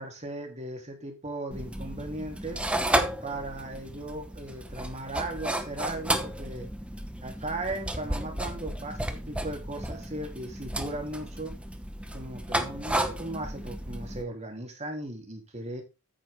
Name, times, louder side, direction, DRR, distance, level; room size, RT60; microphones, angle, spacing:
voice 1, 0.0-2.6 3.2-6.7 7.2-11.5 12.1-15.8, right 2 dB, 30° right, 3 dB, 2.9 m, -37 dB
sound 1, 1.5-14.2, right 1 dB, 5° right, 1.1 m, -33 dB
9.0 x 9.0 x 3.6 m, 0.27 s
head